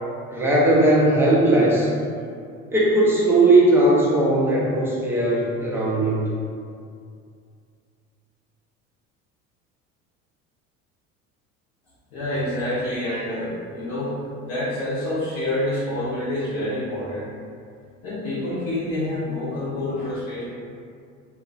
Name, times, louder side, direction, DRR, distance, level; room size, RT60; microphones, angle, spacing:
voice 1, 0.3-1.9 2.7-6.2, right 1 dB, 5° right, -6 dB, 0.5 m, -18 dB
voice 2, 12.1-17.3 18.0-20.4, left 1 dB, 55° left, -10 dB, 0.8 m, -27 dB
3.0 x 2.3 x 2.3 m, 2.3 s
figure-of-eight pair, 65°, 42 cm